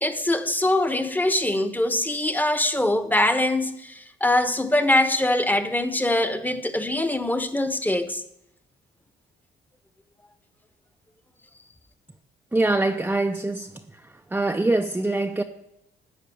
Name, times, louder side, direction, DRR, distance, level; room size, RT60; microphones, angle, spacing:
voice 1, 0.0-8.2, left 1 dB, 10° left, 1.0 m, -23 dB
voice 2, 12.5-13.7 14.3-15.4, right 2 dB, 10° right, 0.6 m, -23 dB
13.5 x 4.9 x 8.5 m
cardioid pair, 90°, 20 cm